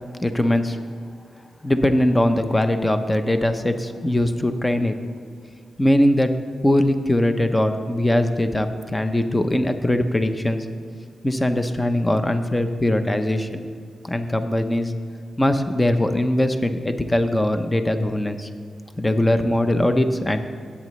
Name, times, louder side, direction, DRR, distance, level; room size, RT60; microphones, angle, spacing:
voice 1, 0.2-0.8 1.6-4.9 5.8-6.3 6.6-10.7 11.2-13.6 14.0-14.9 15.4-18.5 19.0-20.4, left 1 dB, 15° left, 8 dB, 0.6 m, -21 dB
17.5 x 8.4 x 3.1 m, 2.1 s
wide cardioid pair, 105°, 0 cm